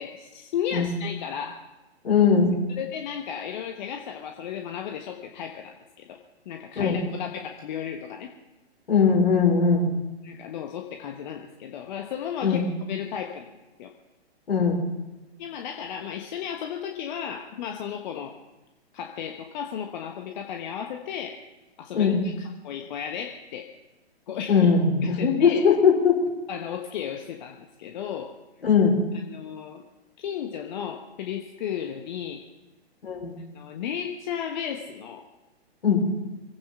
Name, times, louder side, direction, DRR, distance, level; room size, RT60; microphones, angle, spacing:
voice 1, 0.0-1.6 2.7-5.7 6.1-6.2 6.4-8.3 10.2-13.9 15.4-18.3 18.9-21.4 21.8-23.7 24.3-24.7 25.0-25.6 26.5-28.3 29.2-29.8 30.2-32.4 33.5-35.3, left 8 dB, 45° left, 3 dB, 1.3 m, -34 dB
voice 2, 2.0-2.5 6.8-7.0 8.9-9.9 12.4-12.7 14.5-14.8 21.9-22.2 24.5-26.2 28.6-29.0 33.0-33.3 35.8-36.0, left 5 dB, 70° left, -1 dB, 5.1 m, -20 dB
25.0 x 8.8 x 5.8 m, 1.1 s
figure-of-eight pair, 120°, 32 cm